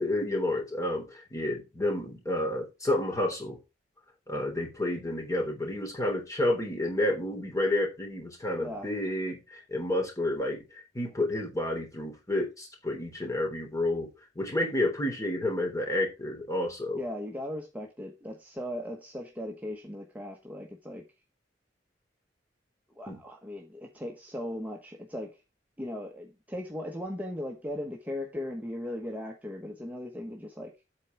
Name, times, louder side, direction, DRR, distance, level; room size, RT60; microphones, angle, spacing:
voice 1, 0.0-3.6 4.3-14.1 14.3-17.0 23.1-23.2, left 1 dB, 20° left, 1 dB, 3.3 m, -30 dB
voice 2, 17.0-21.1 22.9-25.4 25.8-30.7, left 1 dB, 10° right, 1 dB, 1.1 m, -38 dB
8.3 x 4.6 x 6.0 m, 0.26 s
head